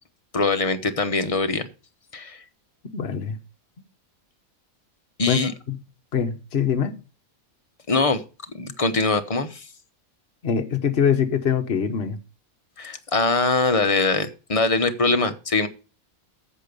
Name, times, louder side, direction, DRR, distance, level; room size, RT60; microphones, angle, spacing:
voice 1, 0.3-1.7 2.1-2.4 5.2-5.5 7.9-8.2 8.5-9.7 12.8-15.7, left 3 dB, 25° left, 1.0 m, -22 dB
voice 2, 2.9-3.4 5.3-5.4 5.7-5.8 6.1-6.9 10.4-12.2, left 7 dB, 50° left, 1.4 m, -23 dB
14.5 x 5.1 x 6.8 m
omnidirectional pair, 1.5 m